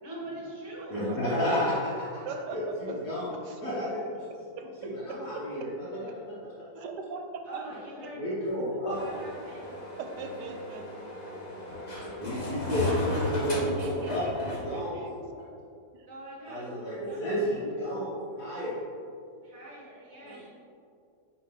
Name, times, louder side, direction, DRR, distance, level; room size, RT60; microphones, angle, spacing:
voice 1, 0.0-1.0 7.5-8.2 8.9-9.7 16.1-16.6 17.0-17.7 19.4-20.5, right 1 dB, 45° right, -5 dB, 1.8 m, -44 dB
voice 2, 0.9-2.2 2.5-3.3 3.6-4.3 4.8-6.0 6.3-6.4 6.7-6.8 8.2-9.0 12.0-15.0 16.5-18.1 18.4-18.8 20.2-20.4, equal, 70° left, -10 dB, 1.7 m, -31 dB
voice 3, 2.2-3.6 4.6-4.7 5.3-5.7 6.8-7.6 10.0-10.9 13.1-15.6 15.9-16.1, right 4 dB, 85° right, 4 dB, 1.3 m, -40 dB
sound 1, 8.9-14.8, left 1 dB, 35° left, 0.8 m, -35 dB
8.8 x 3.7 x 3.3 m, 2.4 s
omnidirectional pair, 1.8 m